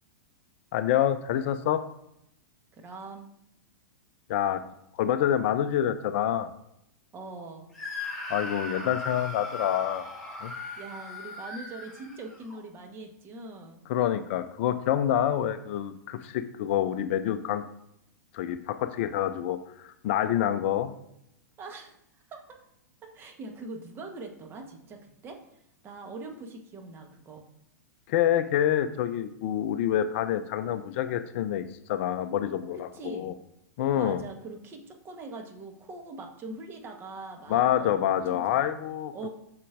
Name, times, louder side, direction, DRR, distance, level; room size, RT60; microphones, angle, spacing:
voice 1, 0.7-1.8 4.3-4.6 4.9-6.5 8.3-10.1 10.4-10.5 13.9-17.6 18.3-20.9 28.1-33.3 33.8-34.2 37.5-39.3, left 10 dB, 45° left, 11 dB, 0.4 m, -27 dB
voice 2, 2.7-3.3 7.1-7.7 10.8-13.8 21.6-22.0 22.3-22.6 23.0-25.4 25.8-27.4 32.7-33.3 34.0-38.7 39.1-39.3, right 3 dB, 25° right, 3 dB, 1.2 m, -42 dB
Screaming, 7.7-12.6, left 2 dB, ahead, 2.3 m, -38 dB
8.1 x 6.3 x 2.5 m, 0.78 s
figure-of-eight pair, 100°, 9 cm